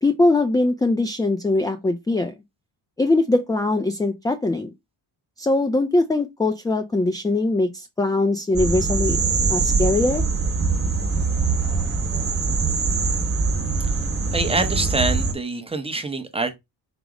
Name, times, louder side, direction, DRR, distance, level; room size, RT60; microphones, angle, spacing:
voice 1, 0.0-2.3 3.0-4.7 5.4-9.2 9.5-10.2, left 2 dB, 10° left, 0.3 m, -21 dB
sound 1, 8.5-15.3, right 4 dB, 30° right, 1.1 m, -23 dB
voice 2, 14.3-16.6, right 3 dB, 15° right, 0.7 m, -25 dB
5.1 x 2.0 x 4.7 m
cardioid pair, 135°, 43 cm